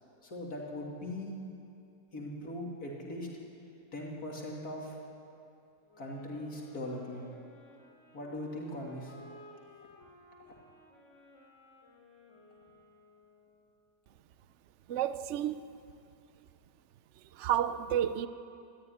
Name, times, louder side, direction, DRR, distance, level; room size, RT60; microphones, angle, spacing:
voice 1, 0.2-1.3 2.1-3.3 3.9-5.0 6.0-7.3 8.1-9.1, left 1 dB, 70° left, 3.3 m, -40 dB
sound 1, 5.8-13.7, left 2 dB, 50° left, 3.2 m, -57 dB
voice 2, 14.9-15.8 17.3-18.3, right 10 dB, 60° right, 0.9 m, -31 dB
21.0 x 14.0 x 9.9 m
omnidirectional pair, 1.7 m